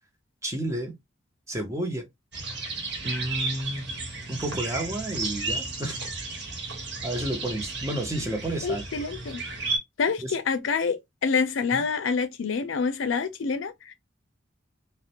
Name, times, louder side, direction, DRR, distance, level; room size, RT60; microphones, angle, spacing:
voice 1, 0.4-0.9 1.5-2.1 3.0-4.0 4.3-6.0 7.0-8.8 10.2-10.3 11.7-11.8, right 1 dB, 15° right, 0.5 m, -31 dB
sound 1, 2.3-9.8, right 3 dB, 60° right, 0.9 m, -33 dB
voice 2, 8.6-9.4 10.0-13.9, left 5 dB, 80° left, 0.5 m, -27 dB
2.4 x 2.0 x 2.8 m
head